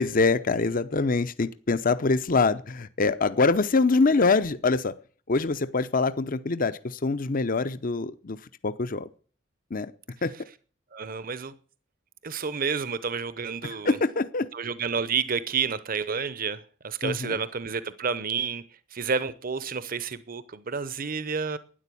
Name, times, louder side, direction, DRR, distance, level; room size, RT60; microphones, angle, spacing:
voice 1, 0.0-4.9 5.3-8.4 8.6-9.1 9.7-9.9 10.2-10.3 13.8-14.5 17.0-17.4, left 3 dB, 45° left, 0.7 m, -24 dB
voice 2, 10.9-11.5 12.2-14.0 14.5-18.6 18.9-21.6, right 5 dB, 50° right, 0.9 m, -30 dB
12.5 x 10.0 x 8.5 m
head